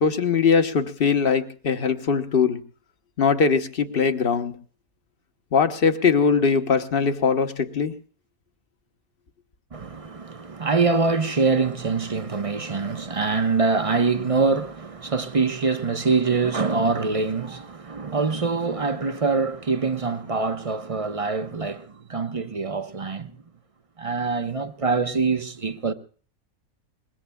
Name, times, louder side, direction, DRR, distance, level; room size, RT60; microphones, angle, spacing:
voice 1, 0.0-2.6 3.2-4.5 5.5-7.9, left 5 dB, 45° left, 1.2 m, -21 dB
voice 2, 9.7-23.3 24.0-25.9, right 4 dB, 35° right, 0.6 m, -24 dB
24.0 x 21.0 x 2.2 m
omnidirectional pair, 1.5 m